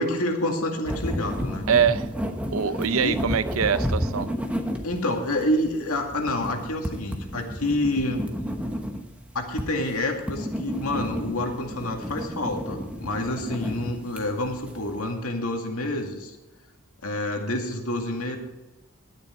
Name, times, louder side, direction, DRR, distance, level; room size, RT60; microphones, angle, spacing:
voice 1, 0.0-1.7 3.0-3.2 4.8-8.2 9.3-16.4 17.0-18.4, left 1 dB, 85° left, 2 dB, 2.2 m, -28 dB
sound 1, 0.9-15.1, equal, 5° right, 1.0 m, -32 dB
voice 2, 1.7-2.1 2.5-4.3, right 7 dB, 75° right, 14 dB, 0.6 m, -23 dB
12.0 x 10.0 x 4.5 m, 1.1 s
head